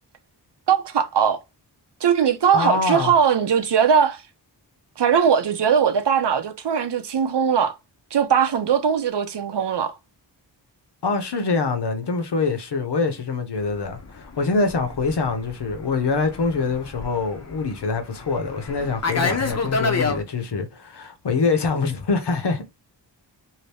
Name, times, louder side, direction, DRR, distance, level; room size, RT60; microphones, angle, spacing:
voice 1, 0.7-1.4 2.0-4.2 5.0-7.8 8.1-9.9, right 7 dB, 70° right, 0.7 m, -20 dB
voice 2, 2.5-3.1 11.0-22.6, left 4 dB, 65° left, 0.9 m, -24 dB
Fixed-wing aircraft airplane, 13.7-20.2, left 4 dB, 35° left, 0.7 m, -29 dB
2.8 x 2.6 x 3.3 m
wide cardioid pair, 95°, 44 cm